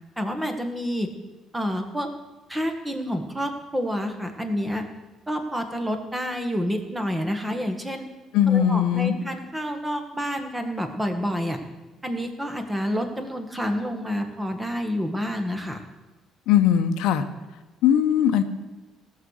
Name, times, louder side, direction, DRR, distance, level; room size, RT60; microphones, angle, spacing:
voice 1, 0.2-1.1 1.5-2.1 2.5-4.8 5.3-8.0 8.5-11.6 12.0-15.8, equal, 10° right, 5 dB, 1.5 m, -28 dB
voice 2, 8.3-9.1 16.5-17.2 17.8-18.4, left 9 dB, 85° left, 8 dB, 0.9 m, -19 dB
16.0 x 6.6 x 6.4 m, 1.2 s
cardioid pair, 115°, 0 cm